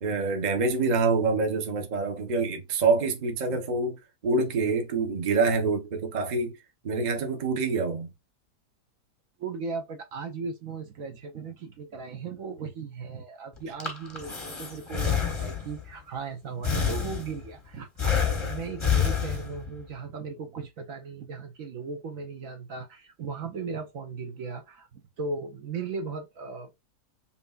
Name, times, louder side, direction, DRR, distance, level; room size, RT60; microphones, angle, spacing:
voice 1, 0.0-6.5 6.8-8.1, right 4 dB, 35° right, 0.8 m, -26 dB
voice 2, 9.4-26.7, right 4 dB, 65° right, 1.1 m, -37 dB
Breathing, 13.6-15.9 16.6-17.6 18.0-19.8, left 7 dB, 25° left, 0.7 m, -28 dB
5.5 x 2.8 x 2.4 m
omnidirectional pair, 1.7 m